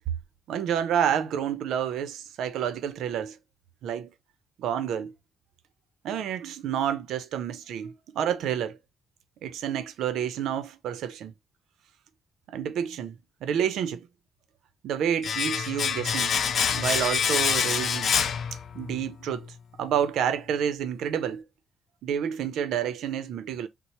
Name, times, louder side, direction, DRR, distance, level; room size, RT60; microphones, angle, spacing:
voice 1, 0.5-3.4 3.8-4.1 4.6-5.1 6.0-8.8 9.4-11.3 12.5-14.1 14.8-16.3 16.7-18.2 18.7-19.5 19.8-21.4 22.0-23.7, right 9 dB, 85° right, 0.5 m, -29 dB
Domestic sounds home sounds, 15.2-19.1 19.3-19.5, left 7 dB, 60° left, 0.4 m, -26 dB
4.3 x 2.0 x 2.9 m
cardioid pair, 105°, 0 cm